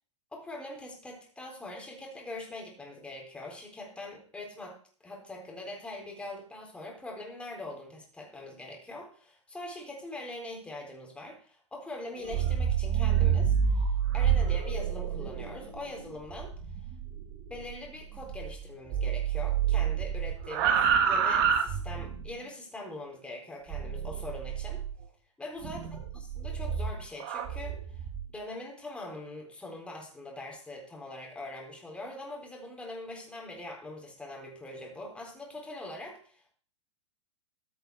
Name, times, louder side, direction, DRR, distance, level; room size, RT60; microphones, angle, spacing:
voice 1, 0.3-4.8 5.0-16.5 17.5-24.8 25.4-36.5, left 2 dB, 5° left, 0 dB, 4.1 m, -43 dB
sound 1, 12.2-18.6 18.9-22.3 23.7-25.0 25.6-28.2, right 8 dB, 45° right, 1.7 m, -29 dB
14.5 x 6.6 x 4.9 m, 0.43 s
figure-of-eight pair, 105°, 15 cm